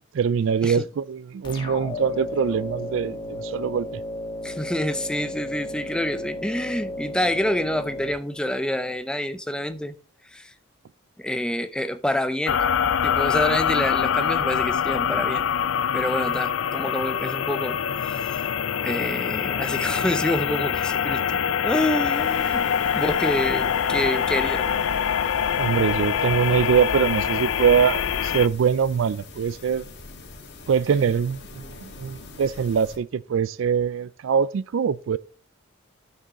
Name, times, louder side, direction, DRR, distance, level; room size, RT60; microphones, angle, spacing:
voice 1, 0.1-4.0 25.6-29.9 30.7-35.2, right 7 dB, 65° right, 0.3 m, -23 dB
sound 1, 1.4-8.9, left 1 dB, 25° left, 1.6 m, -34 dB
voice 2, 4.4-9.9 10.3-10.5 11.2-12.6 13.0-15.5 15.9-18.5 18.8-22.6 22.9-24.7, left 1 dB, 5° left, 0.5 m, -27 dB
sound 2, 12.5-28.5, left 8 dB, 70° left, 0.4 m, -24 dB
sound 3, 22.1-33.0, left 3 dB, 55° left, 1.7 m, -43 dB
12.0 x 6.3 x 3.0 m
head